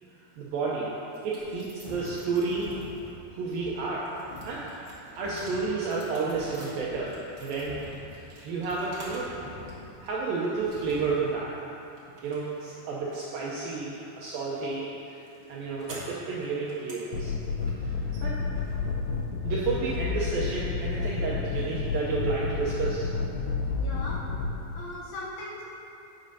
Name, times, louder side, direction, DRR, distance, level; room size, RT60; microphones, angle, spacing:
voice 1, 0.4-0.9 1.2-2.7 3.4-4.1 4.4-7.1 7.4-7.8 8.4-9.3 10.0-11.5 12.2-15.2 15.5-17.4 17.8-17.9 18.2-18.4 19.4-23.1, right 4 dB, 85° right, -5 dB, 2.1 m, -31 dB
sound 1, 1.1-3.1 3.6-9.4 9.7-10.3 10.7-11.3 11.6-19.5, right 1 dB, 55° right, 1.4 m, -49 dB
sound 2, 1.4-11.3, left 2 dB, 60° left, 4.0 m, -47 dB
sound 3, 17.1-24.5, left 4 dB, 90° left, 1.9 m, -30 dB
voice 2, 23.8-24.3 24.7-25.6, left 2 dB, 75° left, -5 dB, 2.4 m, -40 dB
11.5 x 9.1 x 2.8 m, 2.8 s
omnidirectional pair, 5.1 m